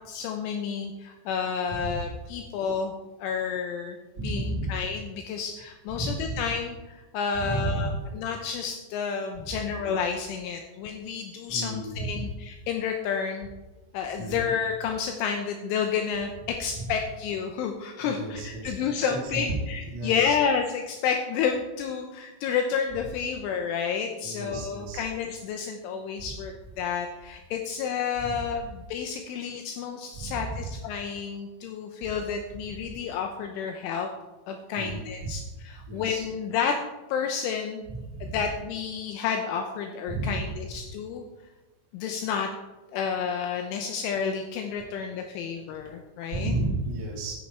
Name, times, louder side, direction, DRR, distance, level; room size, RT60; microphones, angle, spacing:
voice 1, 0.1-2.9 3.2-4.0 4.2-13.5 13.9-34.1 34.5-36.8 37.1-37.8 38.2-41.2 41.9-42.5 42.9-46.5, left 6 dB, 80° left, 4 dB, 3.2 m, -30 dB
voice 2, 1.7-2.0 4.2-4.7 5.9-6.2 7.4-8.0 9.4-9.5 11.5-12.3 14.2-14.5 16.7-16.9 18.0-20.4 24.2-25.0 28.2-28.4 30.1-30.7 34.7-35.4 35.9-36.3 37.9-38.4 40.1-40.4 46.3-47.3, right 2 dB, 40° right, -3 dB, 1.5 m, -33 dB
12.5 x 9.9 x 4.6 m, 1.1 s
omnidirectional pair, 6.0 m